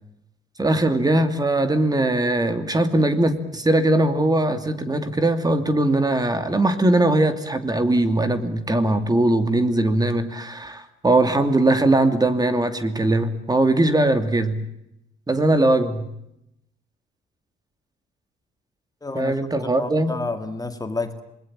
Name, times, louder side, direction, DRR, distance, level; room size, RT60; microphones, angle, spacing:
voice 1, 0.6-14.6 15.3-16.1 19.1-20.2, right 2 dB, 20° right, 9 dB, 2.7 m, -20 dB
voice 2, 19.0-19.4 19.6-21.2, left 3 dB, 20° left, 7 dB, 2.1 m, -30 dB
27.0 x 21.0 x 8.9 m, 0.82 s
cardioid pair, 90°, 20 cm